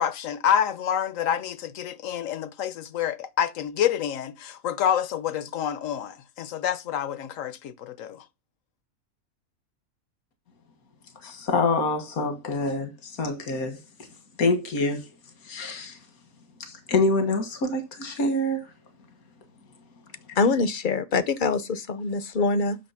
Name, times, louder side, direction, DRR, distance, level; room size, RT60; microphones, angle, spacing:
voice 1, 0.0-8.2, left 9 dB, 70° left, 1.1 m, -27 dB
voice 2, 11.2-13.8 14.4-15.1 15.5-16.0 16.6-18.7, left 2 dB, 85° left, 2.0 m, -26 dB
voice 3, 20.4-22.8, left 4 dB, 45° left, 0.7 m, -24 dB
8.7 x 6.5 x 5.7 m
omnidirectional pair, 1.5 m